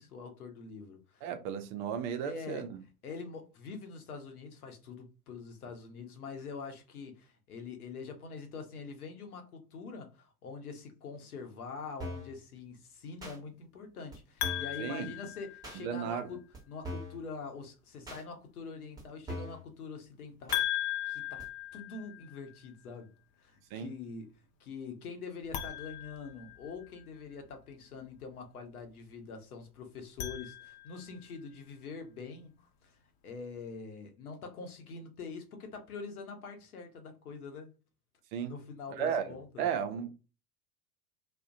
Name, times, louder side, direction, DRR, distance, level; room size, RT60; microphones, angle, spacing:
voice 1, 0.0-1.3 2.2-2.7 3.0-20.6 21.0-21.4 21.7-23.1 23.4-24.3 24.6-37.7 38.5-39.7, left 4 dB, 75° left, 0.8 m, -44 dB
voice 2, 1.2-2.8 14.8-15.1 15.8-16.3 23.7-23.9 38.3-38.5 38.9-39.2 39.6-40.1, right 8 dB, 35° right, 0.4 m, -34 dB
sound 1, 12.0-12.3 13.2-13.4 14.1-14.2 14.4-14.8 15.6-15.8 16.5-16.6 16.8-17.2 18.1-18.2 19.0-19.1 19.3-19.6 20.5-20.6 21.4-21.5, equal, 10° right, 0.9 m, -41 dB
sound 2, 14.4-16.1 20.5-22.5 25.4-27.0 29.9-31.2, left 13 dB, 35° left, 0.4 m, -37 dB
2.4 x 2.1 x 2.5 m
figure-of-eight pair, 85°, 45 cm